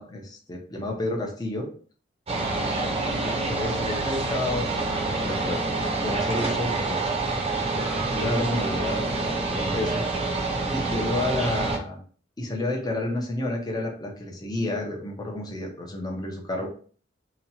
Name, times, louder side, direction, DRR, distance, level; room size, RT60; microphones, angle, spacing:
voice 1, 0.0-1.7 3.2-5.6 6.0-7.1 7.3-12.0 12.4-16.7, left 1 dB, 20° left, 1 dB, 0.6 m, -31 dB
sound 1, 2.3-11.8, right 3 dB, 30° right, 0.6 m, -27 dB
2.9 x 2.2 x 2.7 m, 0.43 s
head